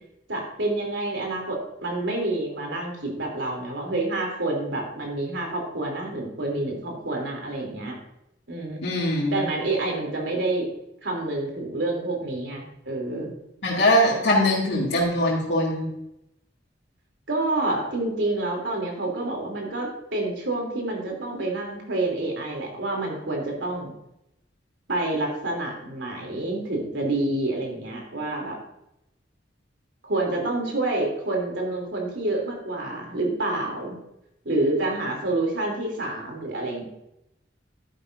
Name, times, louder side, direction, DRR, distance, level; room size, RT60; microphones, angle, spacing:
voice 1, 0.3-8.0 8.5-8.8 9.3-10.7 11.0-13.3 17.3-23.9 24.9-28.6 30.0-34.0 34.4-36.8, right 2 dB, 80° right, 0 dB, 3.2 m, -28 dB
voice 2, 8.8-9.4 13.6-15.9, left 1 dB, 65° left, -8 dB, 2.3 m, -22 dB
11.5 x 10.0 x 2.6 m, 0.84 s
head